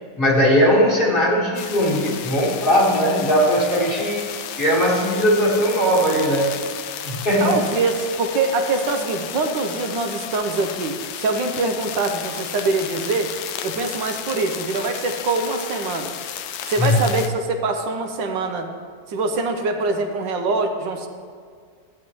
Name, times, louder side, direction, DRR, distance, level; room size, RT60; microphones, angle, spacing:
voice 1, 0.2-4.2 4.6-6.6 7.0-7.6 16.8-17.0, equal, 30° left, -4 dB, 1.8 m, -19 dB
sound 1, 1.5-17.3, left 9 dB, 85° left, 1.4 m, -33 dB
voice 2, 7.4-13.3 13.6-16.1 16.7-18.7 19.1-21.1, right 3 dB, 75° right, 5 dB, 1.5 m, -24 dB
16.0 x 8.8 x 3.1 m, 2.1 s
omnidirectional pair, 2.0 m